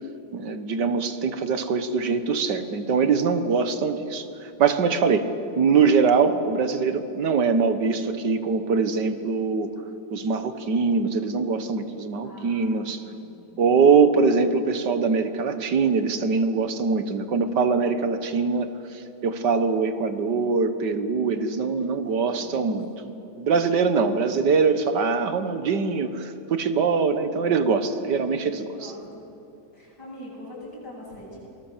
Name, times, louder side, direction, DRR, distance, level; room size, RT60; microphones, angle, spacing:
voice 1, 0.3-9.7 10.1-13.0 13.6-22.9 23.4-28.8, right 5 dB, 85° right, 10 dB, 1.9 m, -23 dB
voice 2, 12.2-13.5 22.1-22.6 23.0-23.2 24.1-24.2 27.2-27.3 28.7-29.2 29.7-31.4, left 1 dB, 75° left, -4 dB, 8.8 m, -44 dB
26.0 x 20.0 x 7.4 m, 2.8 s
omnidirectional pair, 1.8 m